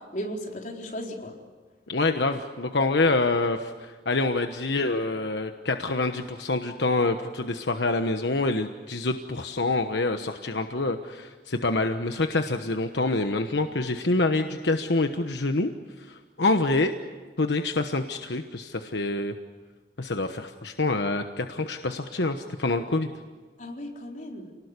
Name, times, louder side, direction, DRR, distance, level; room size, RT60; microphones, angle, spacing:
voice 1, 0.1-1.3 23.6-24.5, equal, 45° left, 0 dB, 4.3 m, -35 dB
voice 2, 1.9-15.7 16.1-16.9 17.4-19.3 20.0-23.1, left 2 dB, 80° left, 6 dB, 1.2 m, -26 dB
29.0 x 19.5 x 9.8 m, 1.4 s
head